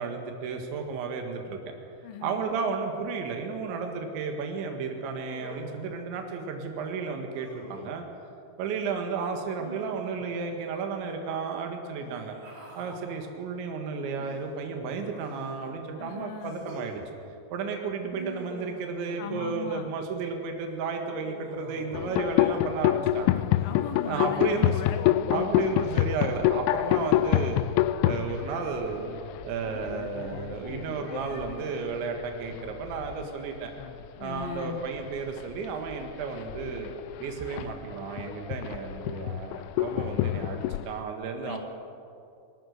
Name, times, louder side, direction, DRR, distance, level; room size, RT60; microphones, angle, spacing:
voice 1, 0.0-1.8 2.2-8.1 8.6-12.4 12.8-17.0 17.5-23.4 24.1-24.8 25.3-27.6 28.0-29.1 29.4-33.7 34.2-36.9 37.2-41.6, right 5 dB, 75° right, 3 dB, 4.1 m, -33 dB
voice 2, 2.0-2.4 16.0-16.7 19.2-19.9 23.6-25.6 34.2-34.8 41.4-41.6, left 8 dB, 60° left, 6 dB, 2.9 m, -38 dB
Human voice, 5.1-5.9 7.3-8.0 9.6-10.4 11.9-13.1 14.2-15.7 16.4-16.9 18.1-19.7 21.1-22.3 23.3-24.2, right 1 dB, 45° right, 5.5 m, -46 dB
sound 1, 21.9-33.3 33.6-34.1 34.4-40.9, left 14 dB, 85° left, 3.0 m, -28 dB
21.0 x 19.5 x 6.6 m, 2.5 s
omnidirectional pair, 5.3 m